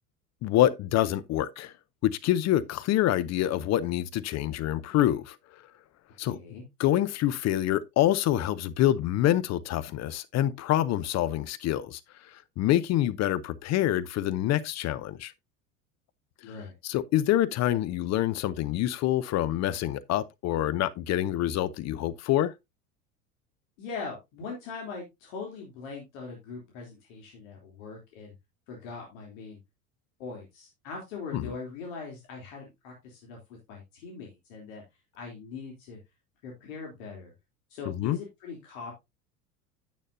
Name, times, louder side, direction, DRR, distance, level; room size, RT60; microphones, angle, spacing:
voice 1, 0.4-1.7 2.0-5.4 6.2-6.4 6.8-12.0 12.6-15.3 16.8-22.5 31.3-31.4 37.9-38.2, left 13 dB, 35° left, 0.8 m, -26 dB
voice 2, 6.2-6.6 16.4-16.7 23.8-28.3 28.7-29.6 30.2-34.8 35.2-36.0 36.4-37.3 37.7-38.9, left 4 dB, 60° left, 3.2 m, -41 dB
9.9 x 8.5 x 2.7 m
figure-of-eight pair, 80°, 44 cm